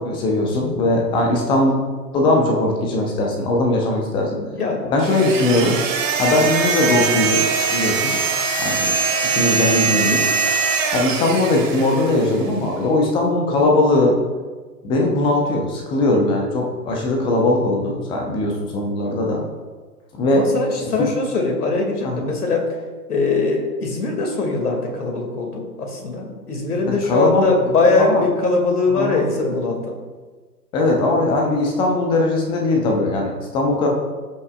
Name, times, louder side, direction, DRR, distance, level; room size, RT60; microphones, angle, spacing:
voice 1, 0.0-1.8 2.1-4.4 4.9-5.8 6.2-7.4 7.7-8.2 8.6-8.9 9.3-10.3 10.9-14.2 14.8-19.4 20.2-20.5 21.0-21.1 22.0-22.3 26.9-27.5 28.0-28.2 28.9-29.2 30.7-33.9, left 2 dB, 10° left, 0 dB, 0.7 m, -19 dB
voice 2, 4.2-5.2 20.3-22.7 23.1-29.9, left 3 dB, 65° left, 2 dB, 2.2 m, -21 dB
sound 1, 5.0-12.4, right 5 dB, 50° right, 1.5 m, -22 dB
14.5 x 6.0 x 2.3 m, 1.4 s
figure-of-eight pair, 120°, 49 cm